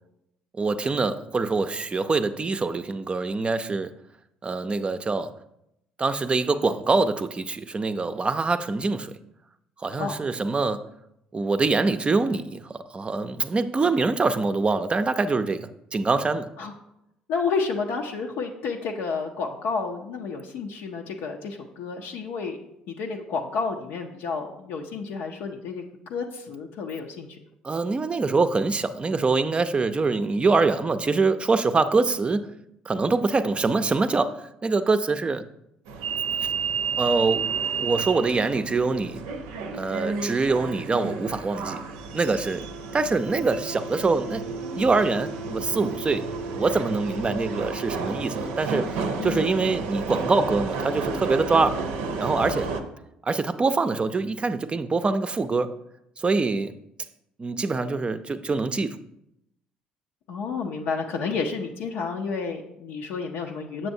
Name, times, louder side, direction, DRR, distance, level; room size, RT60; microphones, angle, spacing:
voice 1, 0.5-3.9 4.4-5.3 6.0-9.1 9.8-10.8 11.3-16.5 27.6-32.4 32.9-35.4 37.0-37.4 37.8-39.2 39.7-41.8 42.1-42.7 42.9-44.4 44.8-51.7 52.2-52.7 53.2-55.7 56.2-56.7 57.4-59.0, right 3 dB, 30° right, 0.5 m, -24 dB
voice 2, 17.3-22.6 22.9-25.8 26.1-27.3 49.2-49.6 60.3-63.9, left 5 dB, 75° left, 0.6 m, -30 dB
sound 1, 35.9-52.8, right 4 dB, 75° right, 0.6 m, -31 dB
7.3 x 6.8 x 2.7 m
hypercardioid pair, 55°, 4 cm